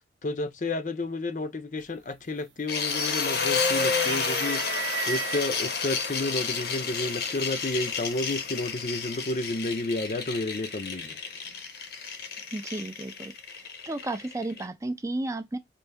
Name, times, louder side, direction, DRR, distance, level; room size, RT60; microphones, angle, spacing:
voice 1, 0.2-11.2, left 2 dB, 45° left, 0.5 m, -31 dB
sound 1, 1.8-2.2 2.6-3.3 3.7-5.6 6.5-6.6 7.8-8.3, right 9 dB, 80° right, 0.6 m, -35 dB
sound 2, 2.7-14.6, left 5 dB, 60° left, 0.8 m, -31 dB
voice 2, 12.5-13.3 13.9-15.6, right 2 dB, 15° right, 0.4 m, -33 dB
5.3 x 2.7 x 3.3 m
head